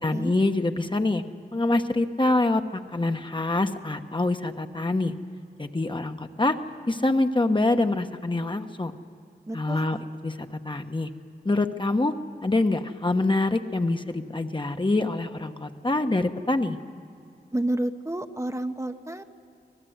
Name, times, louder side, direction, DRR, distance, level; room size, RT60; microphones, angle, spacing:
voice 1, 0.0-1.2 1.5-5.1 5.6-6.6 6.9-8.9 9.5-10.0 10.2-11.1 11.4-12.1 12.4-16.8, left 2 dB, 30° left, 6 dB, 1.1 m, -25 dB
voice 2, 9.5-10.0 17.5-19.2, right 1 dB, 15° right, 6 dB, 0.9 m, -30 dB
25.0 x 18.0 x 8.0 m, 2.6 s
wide cardioid pair, 60°, 17 cm